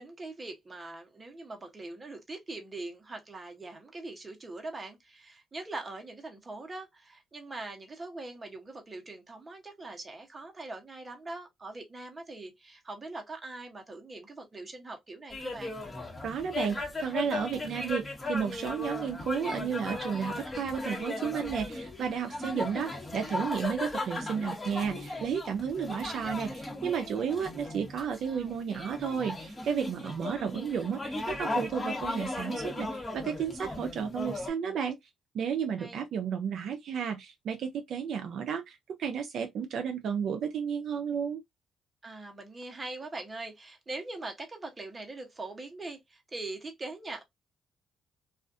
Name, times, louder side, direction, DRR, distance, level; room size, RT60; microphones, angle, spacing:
voice 1, 0.0-15.8 28.3-28.5 30.0-30.5 35.8-36.0 42.0-47.2, right 2 dB, 25° right, 0.9 m, -42 dB
sound 1, 15.3-34.5, left 2 dB, 25° left, 1.1 m, -37 dB
voice 2, 16.2-35.0 35.3-41.4, right 7 dB, 65° right, 0.4 m, -33 dB
2.4 x 2.4 x 2.5 m
cardioid pair, 90°, 0 cm